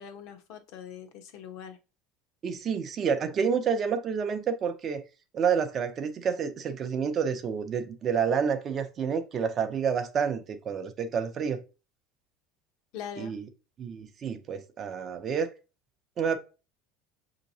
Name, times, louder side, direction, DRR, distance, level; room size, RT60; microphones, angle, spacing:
voice 1, 0.0-1.8 12.9-13.4, left 8 dB, 60° left, 0.8 m, -42 dB
voice 2, 2.4-5.0 5.3-11.6 13.2-13.5 13.8-15.5 16.2-16.4, right 6 dB, 30° right, 0.5 m, -29 dB
6.1 x 2.8 x 2.7 m
cardioid pair, 145°, 0 cm